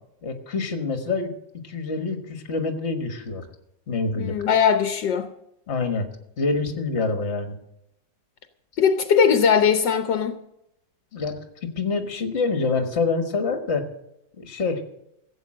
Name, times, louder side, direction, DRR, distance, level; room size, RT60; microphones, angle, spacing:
voice 1, 0.2-1.3 1.6-3.4 3.9-4.4 5.7-6.1 6.4-7.6 11.1-13.9 14.4-15.0, left 4 dB, 40° left, 1.7 m, -26 dB
voice 2, 4.2-5.3 8.8-10.4, left 7 dB, 70° left, 1.5 m, -20 dB
16.0 x 8.1 x 7.6 m
omnidirectional pair, 2.0 m